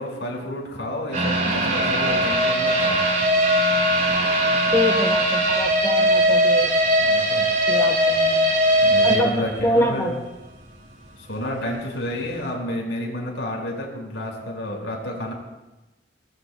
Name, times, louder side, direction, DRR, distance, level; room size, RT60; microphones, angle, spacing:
voice 1, 0.0-3.0 7.1-7.5 8.8-10.1 11.3-15.3, left 1 dB, 85° left, 0 dB, 5.3 m, -30 dB
sound 1, 1.1-10.1 10.4-10.5 11.0-11.1, equal, 45° right, 6.4 m, -20 dB
voice 2, 4.7-6.9 7.7-8.5 9.0-10.2, equal, 15° left, 3 dB, 1.1 m, -25 dB
25.0 x 19.5 x 2.3 m, 1.0 s
head